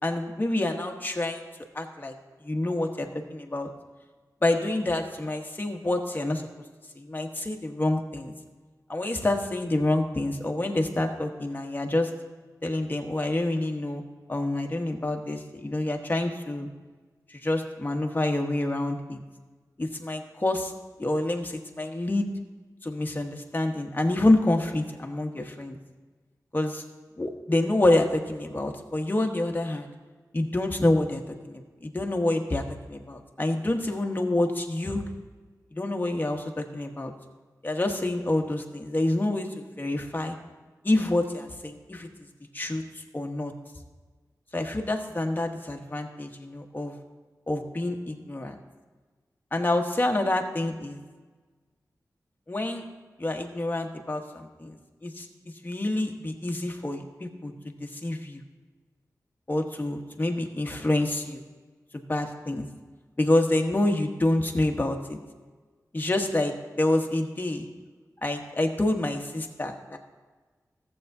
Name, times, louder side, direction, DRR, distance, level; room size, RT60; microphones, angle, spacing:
voice 1, 0.0-1.4 1.7-2.1 2.4-3.7 4.4-6.4 7.0-8.3 8.9-12.1 12.6-14.0 14.3-16.7 17.3-19.2 19.8-20.7 21.0-22.3 22.8-25.8 26.5-26.8 27.2-29.9 30.3-35.0 35.7-37.1 37.6-40.4 40.8-42.1 42.5-43.5 44.5-46.9 47.5-48.6 49.5-51.0 52.5-52.9 53.2-54.8 55.0-55.3 55.6-58.4 59.5-61.4 61.9-62.7 63.2-65.2 65.9-67.7 68.2-70.0, left 1 dB, 30° left, 3 dB, 1.1 m, -27 dB
14.5 x 7.8 x 2.7 m, 1.3 s
wide cardioid pair, 75°, 7 cm